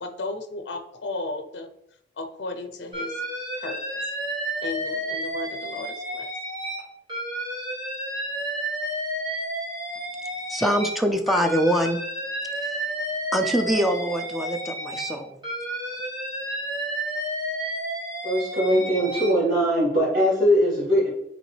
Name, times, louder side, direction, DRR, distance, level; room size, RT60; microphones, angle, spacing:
voice 1, 0.0-1.7 2.2-3.2 3.6-4.0 4.6-6.3, left 2 dB, 60° left, 6 dB, 0.5 m, -34 dB
Alarm, 2.9-6.8 7.1-11.0 11.3-15.1 15.4-19.3, right 1 dB, 25° right, 1.8 m, -31 dB
voice 2, 10.5-12.0 12.6-12.7 13.3-15.4, equal, ahead, 4 dB, 0.4 m, -24 dB
voice 3, 18.2-21.1, equal, 50° right, -6 dB, 1.8 m, -21 dB
5.0 x 3.1 x 3.2 m, 0.75 s
head